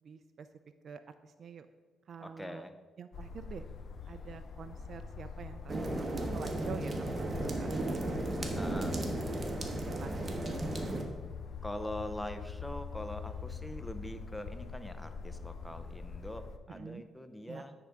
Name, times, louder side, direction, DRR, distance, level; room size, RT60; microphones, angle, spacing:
voice 1, 0.0-0.5 0.8-1.7 2.1-2.6 3.0-3.6 4.1-8.2 9.3-10.5 16.7-17.0 17.5-17.6, right 6 dB, 55° right, 9 dB, 0.3 m, -48 dB
voice 2, 2.2-2.8 8.5-9.0 9.3-9.5 11.6-17.7, left 1 dB, 10° left, 9 dB, 0.6 m, -43 dB
sound 1, 3.1-16.6, left 5 dB, 60° left, 0.4 m, -44 dB
sound 2, 5.7-11.0, right 2 dB, 30° right, 1.0 m, -35 dB
8.9 x 3.5 x 5.0 m, 1.3 s
cardioid pair, 100°, 0 cm